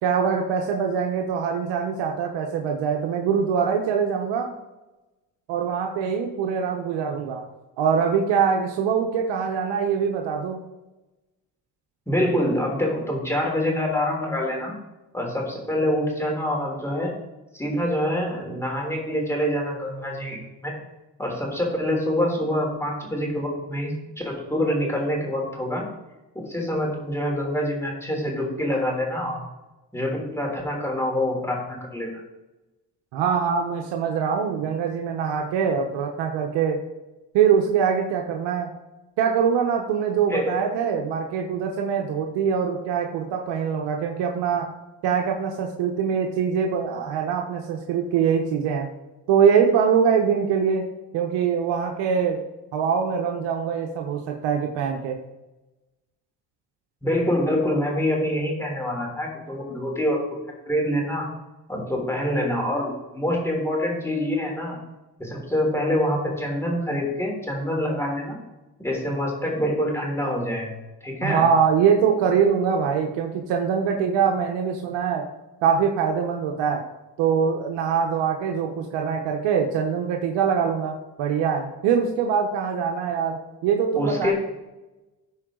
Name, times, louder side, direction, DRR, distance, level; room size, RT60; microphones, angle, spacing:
voice 1, 0.0-4.5 5.5-7.5 7.8-10.6 33.1-36.8 37.3-38.7 39.2-44.7 45.0-48.9 49.3-52.4 52.7-55.2 71.2-75.3 75.6-76.8 77.2-84.3, right 7 dB, 85° right, 2 dB, 1.0 m, -23 dB
voice 2, 12.1-14.7 15.1-17.1 17.5-20.8 21.2-23.9 24.2-25.8 26.3-29.4 29.9-32.2 40.3-40.6 57.0-60.2 60.6-61.3 61.7-64.8 65.2-68.4 68.8-71.5 83.9-84.3, left 1 dB, 5° left, -1 dB, 3.4 m, -26 dB
14.5 x 4.9 x 3.8 m, 1.1 s
cardioid pair, 90°, 42 cm